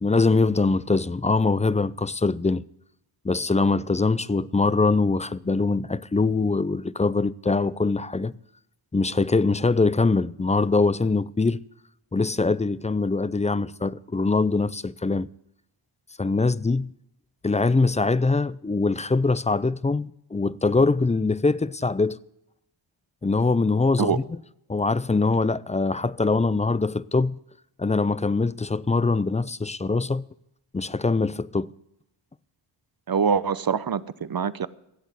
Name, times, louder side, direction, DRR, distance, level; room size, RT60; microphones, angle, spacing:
voice 1, 0.0-2.6 3.2-8.3 8.9-11.6 12.1-15.3 16.2-16.9 17.4-22.2 23.2-24.4 24.7-27.4 27.8-30.2 30.7-31.7, left 3 dB, 15° left, 0.4 m, -23 dB
voice 2, 33.1-34.7, right 6 dB, 45° right, 0.7 m, -24 dB
15.0 x 8.2 x 8.1 m
cardioid pair, 50°, 50 cm